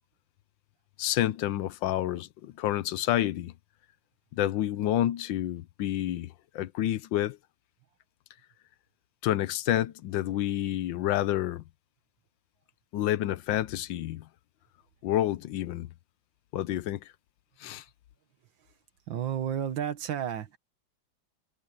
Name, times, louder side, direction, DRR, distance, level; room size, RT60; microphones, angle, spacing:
voice 1, 1.0-3.5 4.3-7.4 9.2-11.6 12.9-14.3 15.0-15.9 16.5-17.1 17.6-17.8, left 13 dB, 80° left, 1.4 m, -29 dB
voice 2, 19.1-20.6, right 9 dB, 80° right, 2.0 m, -31 dB
omnidirectional pair, 2.1 m